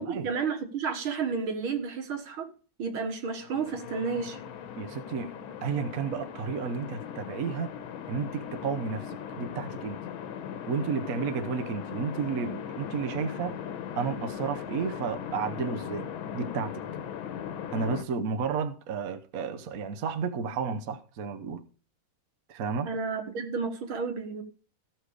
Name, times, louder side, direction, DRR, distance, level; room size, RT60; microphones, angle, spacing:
voice 1, 0.0-2.5 2.8-4.4 22.9-24.4, right 5 dB, 75° right, 2.3 m, -31 dB
sound 1, 3.4-18.0, left 8 dB, 80° left, 1.7 m, -39 dB
voice 2, 4.8-5.3 5.6-7.7 8.1-10.0 10.7-13.6 14.0-16.1 16.3-16.8 17.7-21.6 22.5-22.9, right 5 dB, 55° right, 1.1 m, -32 dB
15.0 x 6.0 x 4.9 m
omnidirectional pair, 2.3 m